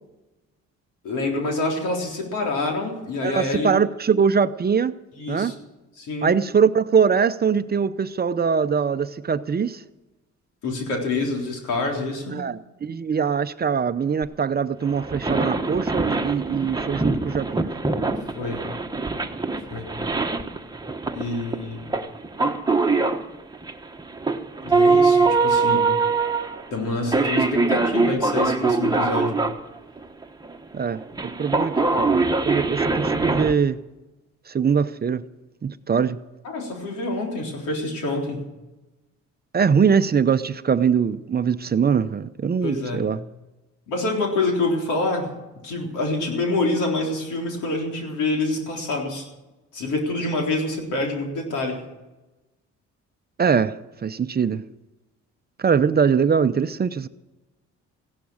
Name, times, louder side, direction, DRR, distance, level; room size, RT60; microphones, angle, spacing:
voice 1, 1.0-3.7 5.2-5.5 6.0-6.3 10.6-12.5 18.2-18.6 19.7-19.9 21.1-22.0 24.6-25.9 26.7-29.4 36.4-38.4 42.6-43.1 43.9-45.4 45.6-49.3 49.7-51.8, left 2 dB, 90° left, 3.9 m, -26 dB
voice 2, 3.2-5.0 5.3-5.5 6.2-9.8 12.3-17.7 30.7-32.2 32.4-33.8 34.5-35.2 35.6-36.2 39.5-43.2 53.4-54.6 55.6-57.1, right 6 dB, 30° right, 0.7 m, -22 dB
sound 1, 14.8-29.6 30.0-33.5, right 3 dB, 15° right, 1.2 m, -23 dB
15.5 x 11.5 x 6.4 m
cardioid pair, 90°, 30 cm